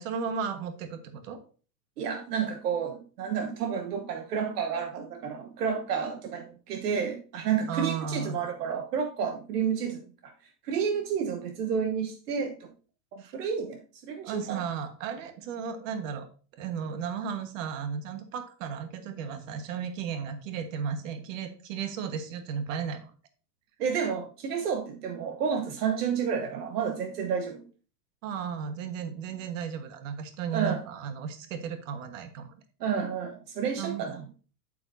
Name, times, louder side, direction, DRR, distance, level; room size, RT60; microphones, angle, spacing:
voice 1, 0.0-1.4 7.7-8.4 13.2-13.3 14.2-16.3 16.5-23.1 28.2-32.5 33.8-34.0, right 7 dB, 50° right, 1.4 m, -34 dB
voice 2, 2.0-10.3 10.6-12.7 13.1-14.6 23.8-27.7 30.5-30.8 32.8-34.2, right 7 dB, 70° right, 1.2 m, -30 dB
8.7 x 8.3 x 2.7 m
supercardioid pair, 165°, 48 cm